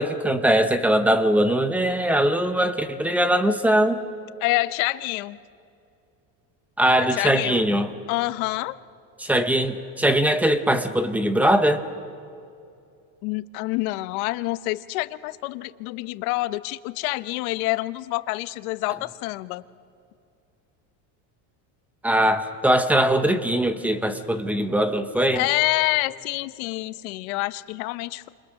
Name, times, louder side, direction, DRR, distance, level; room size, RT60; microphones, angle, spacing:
voice 1, 0.0-4.0 6.8-7.9 9.2-11.8 22.0-25.4, right 1 dB, 5° right, 9 dB, 0.7 m, -21 dB
voice 2, 4.4-5.4 7.0-7.6 8.1-8.7 13.2-19.6 25.3-28.3, left 19 dB, 85° left, 14 dB, 1.0 m, -27 dB
29.5 x 27.5 x 6.5 m, 2.6 s
cardioid pair, 180°, 41 cm